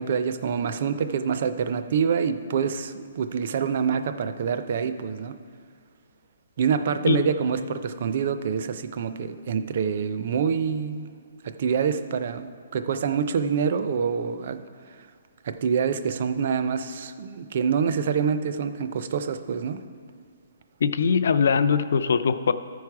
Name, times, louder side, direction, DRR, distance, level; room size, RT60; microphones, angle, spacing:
voice 1, 0.0-5.3 6.6-11.1 11.4-14.6 15.4-19.8, right 6 dB, 35° right, 10 dB, 0.4 m, -26 dB
voice 2, 20.8-22.5, left 6 dB, 55° left, 12 dB, 0.4 m, -21 dB
13.5 x 4.7 x 4.7 m, 2.1 s
hypercardioid pair, 180°, 0 cm